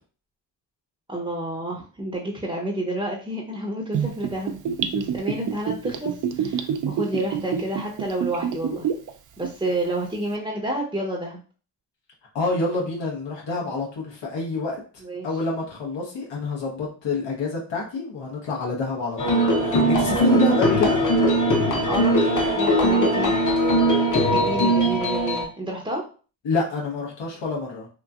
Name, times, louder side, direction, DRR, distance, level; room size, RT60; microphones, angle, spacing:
voice 1, 1.1-8.9 9.4-11.4 15.0-15.3 20.2-20.4 21.9-23.3 24.3-26.0, right 1 dB, 10° right, -2 dB, 0.7 m, -30 dB
Gurgling / Bathtub (filling or washing), 3.9-9.1 9.4-9.5, right 8 dB, 50° right, 0.4 m, -26 dB
voice 2, 12.3-14.8 15.2-21.0 26.4-27.9, left 3 dB, 80° left, -2 dB, 1.0 m, -27 dB
sound 1, 19.2-25.5, equal, 45° left, 0.8 m, -20 dB
2.9 x 2.6 x 2.3 m, 0.39 s
cardioid pair, 55°, 43 cm